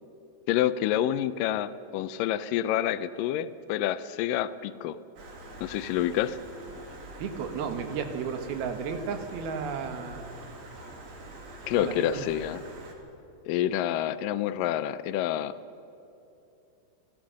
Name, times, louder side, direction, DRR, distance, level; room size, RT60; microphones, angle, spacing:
voice 1, 0.5-5.0 5.6-6.4 11.7-12.6 13.5-15.5, left 11 dB, 80° left, 13 dB, 2.1 m, -28 dB
Stream, 5.2-12.9, right 1 dB, 50° right, 3.4 m, -45 dB
voice 2, 7.2-10.2 11.7-12.3, right 6 dB, 90° right, 7 dB, 3.4 m, -33 dB
29.5 x 15.5 x 6.4 m, 2.8 s
omnidirectional pair, 4.2 m